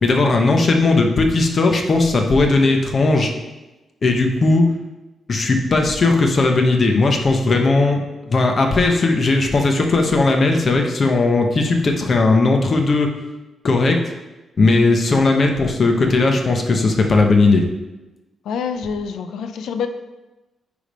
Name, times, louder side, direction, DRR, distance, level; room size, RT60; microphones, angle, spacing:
voice 1, 0.0-3.3 4.0-4.6 5.3-8.0 8.3-13.1 13.6-14.0 14.6-17.6, left 3 dB, 30° left, 3 dB, 0.8 m, -17 dB
voice 2, 18.4-19.9, left 6 dB, 80° left, 9 dB, 0.6 m, -26 dB
9.6 x 3.5 x 5.1 m, 1.1 s
wide cardioid pair, 175°, 0 cm